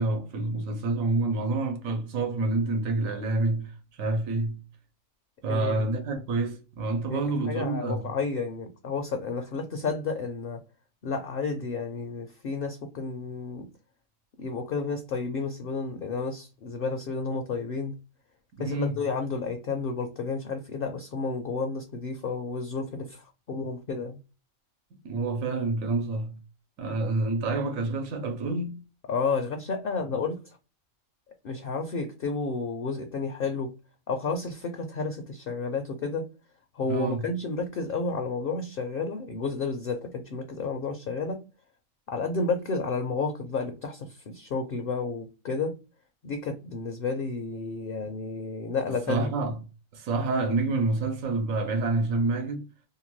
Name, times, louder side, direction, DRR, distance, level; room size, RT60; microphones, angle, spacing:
voice 1, 0.0-3.7 4.0-4.6 5.4-8.1 18.6-18.9 25.0-26.4 26.8-28.8 36.9-37.2 49.1-49.6 49.9-52.7, right 3 dB, 85° right, 1.2 m, -28 dB
voice 2, 5.5-5.8 7.1-10.6 11.0-13.7 14.4-17.9 18.6-24.2 29.1-30.4 31.4-33.7 34.1-36.3 36.7-41.4 42.1-45.8 46.2-49.4, left 4 dB, 60° left, 0.6 m, -31 dB
2.8 x 2.2 x 2.9 m
omnidirectional pair, 1.4 m